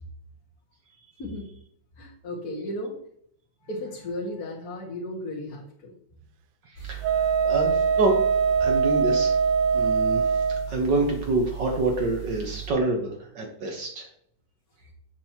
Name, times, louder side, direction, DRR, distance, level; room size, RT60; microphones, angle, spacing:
voice 1, 2.0-3.0 3.6-6.0, left 1 dB, 50° left, -1 dB, 2.3 m, -35 dB
voice 2, 6.7-8.1 8.6-9.4 9.7-10.3 10.7-14.1, right 2 dB, 65° right, 1 dB, 1.9 m, -27 dB
sound 1, 6.8-12.7, right 12 dB, 80° left, 1.9 m, -38 dB
Wind instrument woodwind instrument, 7.0-10.7, right 6 dB, 85° right, 1.4 m, -22 dB
7.7 x 7.3 x 3.0 m, 0.64 s
omnidirectional pair, 2.1 m